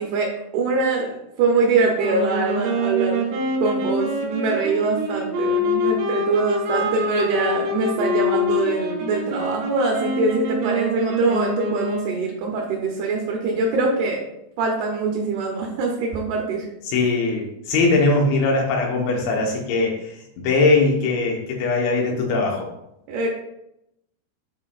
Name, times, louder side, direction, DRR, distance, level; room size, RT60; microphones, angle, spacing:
voice 1, 0.0-3.3 3.6-14.2 14.6-16.7 23.1-23.3, right 3 dB, 75° right, -1 dB, 2.6 m, -23 dB
sound 1, 2.0-12.3, left 1 dB, 90° right, 3.7 m, -25 dB
voice 2, 16.9-22.7, left 3 dB, 90° left, -1 dB, 3.6 m, -21 dB
10.5 x 4.4 x 2.5 m, 0.83 s
omnidirectional pair, 5.1 m